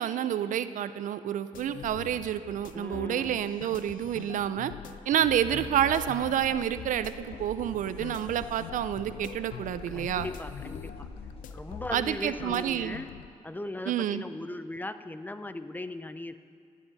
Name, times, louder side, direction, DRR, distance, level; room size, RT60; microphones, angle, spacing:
voice 1, 0.0-4.7 5.1-10.3 11.9-13.0 13.9-14.2, right 10 dB, 70° right, 13 dB, 0.4 m, -29 dB
sound 1, 1.5-13.3, left 9 dB, 85° left, 0.5 m, -44 dB
voice 2, 2.7-3.5 9.9-11.1 11.5-13.1 13.4-16.4, left 2 dB, 15° left, 11 dB, 0.5 m, -38 dB
sound 2, 5.4-12.6, left 2 dB, 45° left, 1.4 m, -47 dB
14.5 x 9.2 x 4.0 m, 2.4 s
cardioid pair, 80°, 14 cm